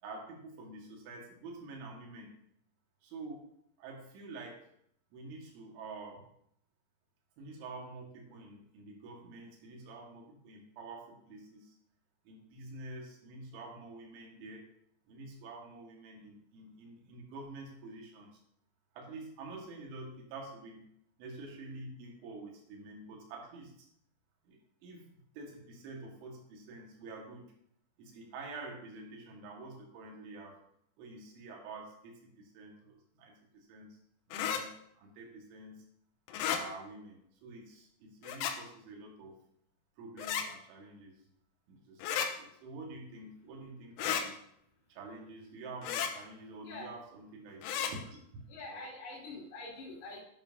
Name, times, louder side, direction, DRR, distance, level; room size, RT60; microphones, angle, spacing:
voice 1, 0.0-2.4 3.0-3.5 3.8-4.7 5.1-6.3 7.4-11.8 12.3-14.7 15.1-18.4 18.9-20.9 21.2-23.9 24.4-27.5 28.0-30.6 31.0-34.0 34.3-35.8 36.5-39.4 40.0-41.2 41.7-44.4 44.9-48.9, right 3 dB, 75° right, 0 dB, 4.1 m, -48 dB
sound 1, 34.3-34.6 36.3-36.6 38.2-38.6 40.2-40.5 42.0-42.3 44.0-44.3 45.8-46.1 47.6-47.9, left 8 dB, 85° left, 3.4 m, -33 dB
voice 2, 46.6-46.9 48.5-50.2, left 2 dB, 55° left, -4 dB, 4.4 m, -45 dB
11.0 x 10.0 x 2.8 m, 0.71 s
omnidirectional pair, 5.5 m